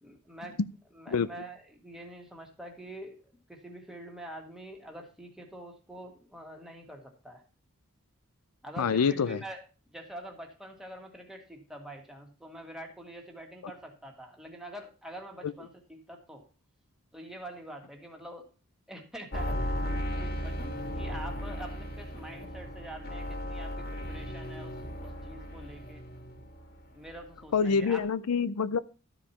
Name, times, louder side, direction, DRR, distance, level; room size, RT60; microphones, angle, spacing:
voice 1, 0.0-0.6 0.9-7.4 8.6-9.6 9.9-16.5 17.1-18.5 18.9-19.8 20.2-20.6 21.0-26.0 26.9-28.0, right 1 dB, ahead, 1.9 m, -45 dB
voice 2, 8.8-9.4 15.4-15.5 27.5-28.8, left 6 dB, 80° left, 0.5 m, -26 dB
sound 1, 19.3-26.8 27.1-27.7 28.0-28.1, equal, 45° left, 1.9 m, -36 dB
12.5 x 5.0 x 5.7 m
head